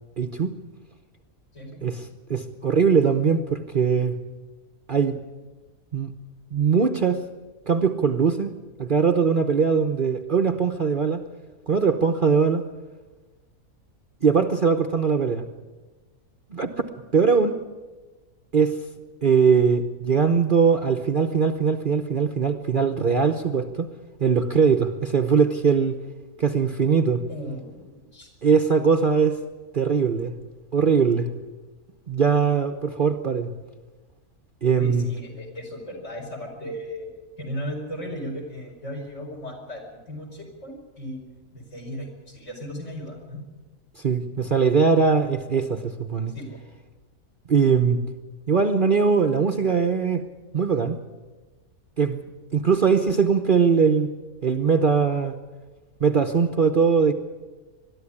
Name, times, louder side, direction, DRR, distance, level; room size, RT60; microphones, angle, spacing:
voice 1, 0.2-0.6 1.8-4.2 4.9-5.2 5.9-6.1 6.5-7.2 7.7-11.2 11.7-12.6 14.2-15.4 16.5-17.6 18.5-18.8 19.2-23.9 24.2-26.0 26.4-27.2 28.4-29.4 29.7-30.3 30.7-31.3 32.1-33.5 34.6-35.1 44.0-46.3 47.5-48.0 48.5-50.2 50.5-51.0 52.0-52.2 52.5-54.1 54.4-55.3 56.0-57.1, right 5 dB, 40° right, 7 dB, 1.0 m, -21 dB
voice 2, 27.3-28.3 34.8-37.1 37.4-41.2 41.5-43.4 46.3-46.6, equal, 55° left, 0 dB, 5.5 m, -36 dB
21.5 x 13.0 x 9.9 m, 1.3 s
omnidirectional pair, 1.5 m